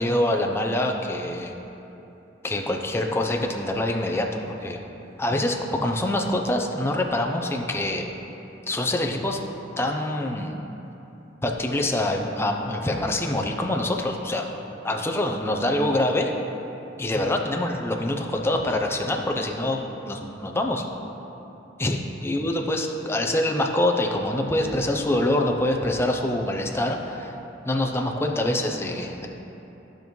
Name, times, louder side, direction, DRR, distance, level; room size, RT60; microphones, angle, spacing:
voice 1, 0.0-1.5 2.4-4.8 5.2-8.0 8.7-9.4 9.8-10.5 11.4-14.5 14.8-16.3 17.0-20.8 21.8-27.3 27.7-29.3, left 1 dB, 15° left, 2 dB, 0.6 m, -25 dB
14.0 x 5.2 x 3.1 m, 3.0 s
head